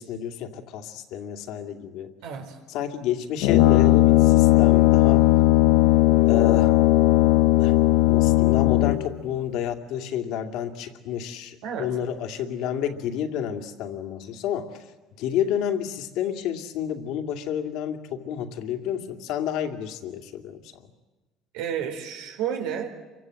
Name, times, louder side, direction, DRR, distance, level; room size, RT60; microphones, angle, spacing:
voice 1, 0.0-2.1 2.7-5.3 6.2-6.7 7.3-7.8 8.1-20.9, left 9 dB, 70° left, 5 dB, 2.6 m, -30 dB
voice 2, 2.2-2.6 11.6-11.9 21.5-22.9, right 8 dB, 90° right, 4 dB, 4.5 m, -31 dB
Brass instrument, 3.4-9.2, left 17 dB, 90° left, 0.9 m, -17 dB
28.5 x 24.5 x 7.9 m, 1.2 s
cardioid pair, 140°, 0 cm